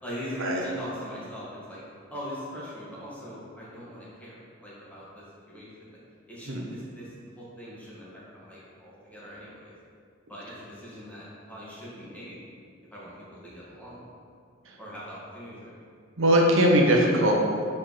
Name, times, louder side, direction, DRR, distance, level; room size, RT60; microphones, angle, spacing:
voice 1, 0.0-1.8 2.1-6.0 6.3-9.7 10.3-12.4 12.9-14.0 14.8-15.7, equal, 5° left, -8 dB, 1.6 m, -41 dB
voice 2, 16.2-17.3, right 1 dB, 80° right, -1 dB, 0.9 m, -20 dB
4.9 x 4.4 x 6.0 m, 2.2 s
head